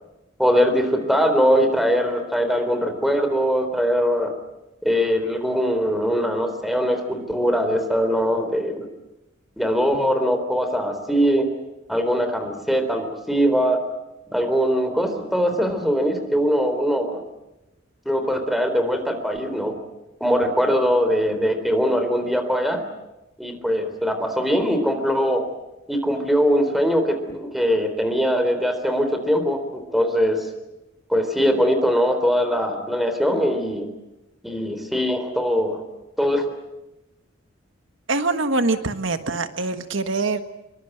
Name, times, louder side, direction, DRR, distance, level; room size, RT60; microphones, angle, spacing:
voice 1, 0.4-4.3 4.8-8.9 9.6-11.5 11.9-13.8 14.3-17.2 18.1-19.8 20.2-22.8 23.4-25.4 25.9-30.5 31.1-33.8 34.4-35.8 36.2-36.4, equal, ahead, 7 dB, 3.7 m, -21 dB
voice 2, 38.1-40.4, right 3 dB, 75° right, 9 dB, 1.5 m, -24 dB
25.5 x 23.5 x 8.0 m, 0.97 s
head